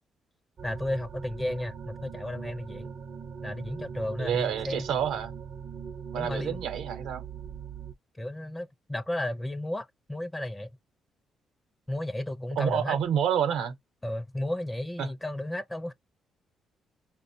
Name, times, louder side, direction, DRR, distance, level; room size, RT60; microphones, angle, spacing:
voice 1, 0.6-2.9 3.4-4.9 6.1-6.6 8.2-10.7 11.9-13.0 14.0-15.9, left 1 dB, 15° left, 0.4 m, -33 dB
sound 1, 0.6-7.9, right 6 dB, 50° right, 0.4 m, -41 dB
voice 2, 4.2-5.3 6.1-7.2 12.6-13.7 15.0-15.1, right 8 dB, 85° right, 0.7 m, -28 dB
4.1 x 2.0 x 2.6 m
cardioid pair, 90°, 0 cm